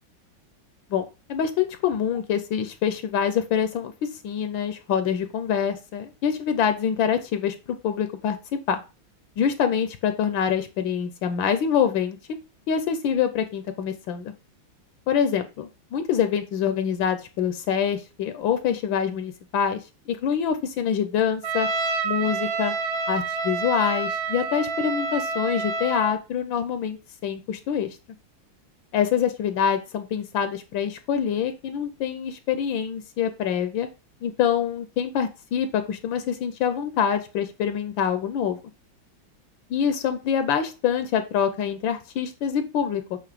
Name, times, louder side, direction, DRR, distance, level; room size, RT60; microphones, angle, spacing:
voice 1, 0.9-8.4 8.7-8.8 9.4-12.2 12.7-14.3 15.1-21.7 22.0-22.7 23.1-28.0 28.9-33.9 34.2-38.6 39.7-43.2, left 8 dB, 75° left, 9 dB, 1.4 m, -25 dB
Trumpet, 21.4-26.2, right 4 dB, 55° right, 1.2 m, -28 dB
7.8 x 3.1 x 4.9 m, 0.29 s
omnidirectional pair, 2.1 m